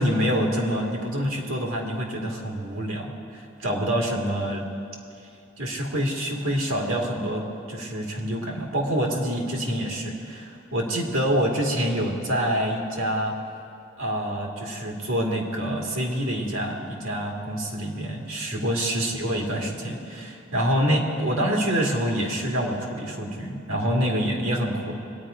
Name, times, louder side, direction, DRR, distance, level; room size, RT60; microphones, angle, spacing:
voice 1, 0.0-4.6 5.6-13.3 14.0-24.9, equal, 85° right, 0 dB, 2.3 m, -26 dB
22.5 x 9.3 x 5.0 m, 2.5 s
head